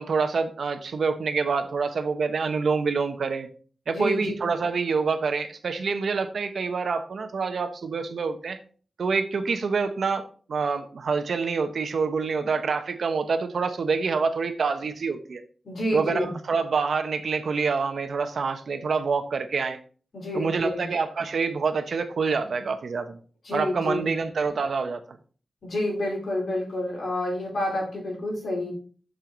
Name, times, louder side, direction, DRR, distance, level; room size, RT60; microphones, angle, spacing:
voice 1, 0.0-3.5 3.9-8.6 9.0-15.4 15.9-19.8 20.3-23.2 23.5-25.0, right 5 dB, 75° right, 1.1 m, -26 dB
voice 2, 3.9-4.2 15.6-16.3 20.1-20.8 23.4-24.1 25.6-28.7, left 1 dB, 65° left, 4.2 m, -29 dB
7.6 x 6.7 x 4.0 m
wide cardioid pair, 160°, 0 cm